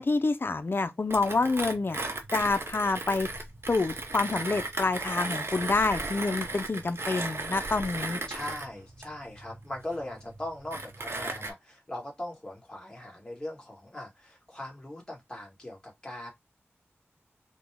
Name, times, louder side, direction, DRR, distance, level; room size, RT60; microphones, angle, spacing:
voice 1, 0.0-2.0 2.3-3.3 3.7-8.2, left 3 dB, 50° left, 0.5 m, -27 dB
Mechanisms, 1.1-11.5, right 2 dB, 60° right, 0.8 m, -36 dB
voice 2, 8.3-16.3, left 1 dB, 20° left, 1.9 m, -40 dB
4.1 x 2.2 x 3.4 m
wide cardioid pair, 65°, 5 cm